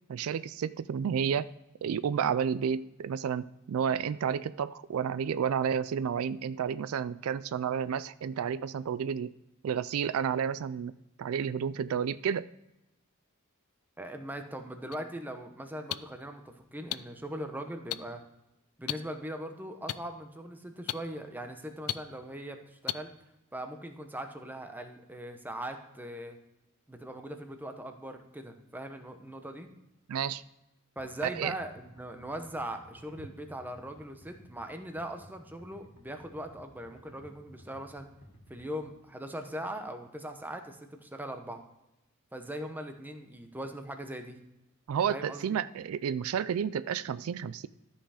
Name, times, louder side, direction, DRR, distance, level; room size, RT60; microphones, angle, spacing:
voice 1, 0.1-1.5 1.8-9.3 9.6-10.9 11.2-12.5 30.1-30.4 31.4-31.5 44.9-47.7, right 7 dB, 85° right, 16 dB, 0.4 m, -31 dB
voice 2, 14.0-18.2 18.8-23.1 23.5-26.4 26.9-29.7 31.0-38.1 38.5-41.6 42.3-44.4 45.1-45.4, right 1 dB, 10° right, 5 dB, 0.9 m, -40 dB
sound 1, 14.9-15.0 15.9-16.0 16.9-17.0 17.9-18.0 18.9-19.0 19.9-20.0 20.9-21.0 21.9-22.0 22.9-23.0, left 13 dB, 85° left, 0.4 m, -30 dB
sound 2, 31.0-38.9, equal, 65° left, 2.0 m, -56 dB
13.0 x 5.6 x 4.9 m, 0.91 s
head